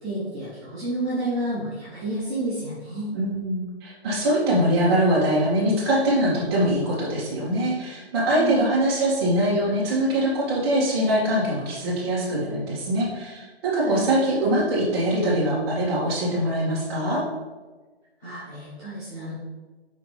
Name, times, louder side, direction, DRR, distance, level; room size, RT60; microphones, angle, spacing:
voice 1, 0.0-3.1 8.3-8.6 13.7-14.0 18.2-19.3, right 1 dB, 5° left, -16 dB, 0.5 m, -30 dB
voice 2, 3.1-17.2, right 1 dB, 25° right, -7 dB, 2.2 m, -23 dB
6.5 x 5.8 x 3.4 m, 1.3 s
hypercardioid pair, 165°, 32 cm